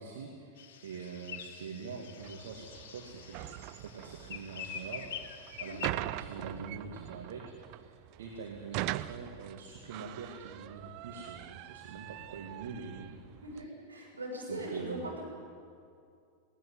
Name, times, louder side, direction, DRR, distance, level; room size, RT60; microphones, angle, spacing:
voice 1, 0.0-3.5 3.8-7.4 7.7-13.2 14.5-15.2, right 5 dB, 60° right, 1 dB, 2.1 m, -44 dB
sound 1, 0.6-5.9, left 8 dB, 55° left, 1.4 m, -45 dB
sound 2, 2.2-13.7, right 16 dB, 45° right, 0.5 m, -42 dB
voice 2, 13.4-15.2, right 1 dB, 80° right, -2 dB, 6.7 m, -40 dB
19.0 x 18.0 x 9.2 m, 2.3 s
figure-of-eight pair, 90°, 0 cm